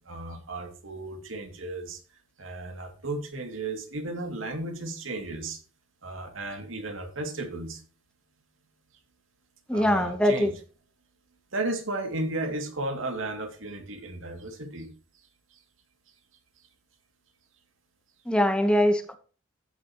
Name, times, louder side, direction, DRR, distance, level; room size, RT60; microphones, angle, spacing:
voice 1, 0.0-2.0 2.4-5.6 6.0-7.8 9.7-10.6 11.5-14.9, right 2 dB, 80° right, 5 dB, 2.6 m, -34 dB
voice 2, 9.7-10.5 18.3-19.2, equal, 5° left, 8 dB, 1.0 m, -22 dB
14.0 x 9.0 x 3.0 m, 0.38 s
head